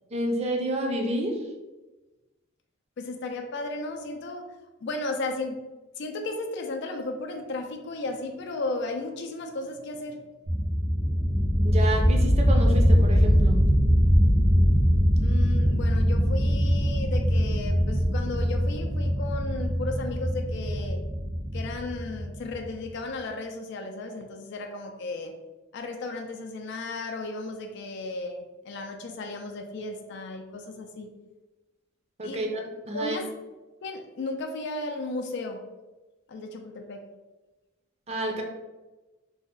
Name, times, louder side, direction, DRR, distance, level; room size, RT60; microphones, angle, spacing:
voice 1, 0.1-1.4 11.6-13.6 32.2-32.5 32.8-33.2 38.1-38.4, right 1 dB, 35° right, 1 dB, 0.6 m, -29 dB
voice 2, 3.0-4.4 4.8-5.6 6.0-10.2 15.2-21.0 21.5-25.3 25.7-31.1 32.2-32.4 32.9-33.4 33.8-35.6 36.3-37.0, left 2 dB, 60° left, 3 dB, 0.4 m, -34 dB
sound 1, 10.5-22.8, equal, 80° right, 1.3 m, -22 dB
3.4 x 2.1 x 3.7 m, 1.1 s
head